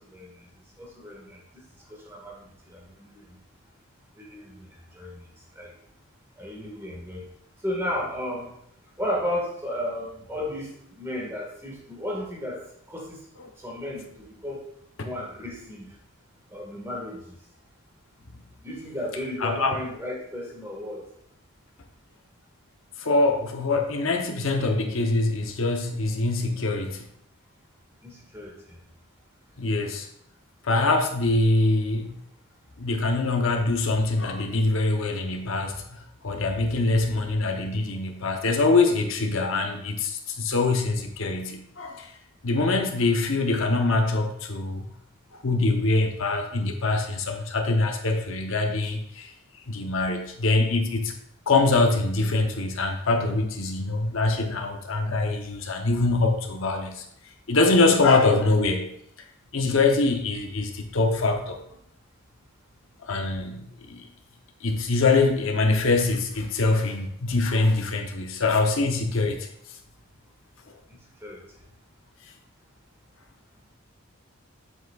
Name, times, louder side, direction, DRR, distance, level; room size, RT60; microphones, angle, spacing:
voice 1, 0.1-0.5 0.8-1.6 1.9-3.4 4.2-4.7 4.9-5.2 5.6-5.7 6.4-7.3 7.6-8.5 9.0-10.7 11.0-12.6 12.9-13.2 13.6-14.6 15.0-15.9 16.5-17.4 18.6-21.0 28.0-28.8 71.2-71.4, left 1 dB, 10° right, -3 dB, 1.7 m, -34 dB
voice 2, 19.4-19.8 23.0-27.1 29.6-30.1 30.6-32.1 32.8-42.1 42.4-44.9 45.4-49.3 49.7-51.1 51.5-57.0 57.5-58.9 59.5-61.6 63.0-64.0 64.6-69.5, left 3 dB, 70° left, 3 dB, 0.8 m, -24 dB
7.9 x 7.6 x 2.4 m, 0.71 s
head